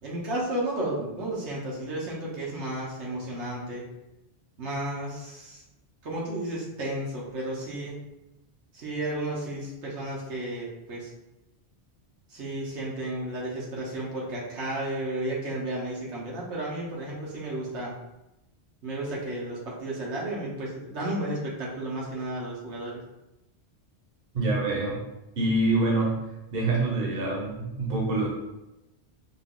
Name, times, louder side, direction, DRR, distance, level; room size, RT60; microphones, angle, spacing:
voice 1, 0.0-3.8 4.6-5.6 6.0-8.0 8.7-11.1 12.3-17.9 18.8-23.0, right 1 dB, 85° right, -5 dB, 1.3 m, -33 dB
voice 2, 24.3-25.0 25.4-28.3, right 2 dB, 60° right, -3 dB, 1.1 m, -26 dB
3.9 x 2.4 x 3.7 m, 0.95 s
omnidirectional pair, 1.1 m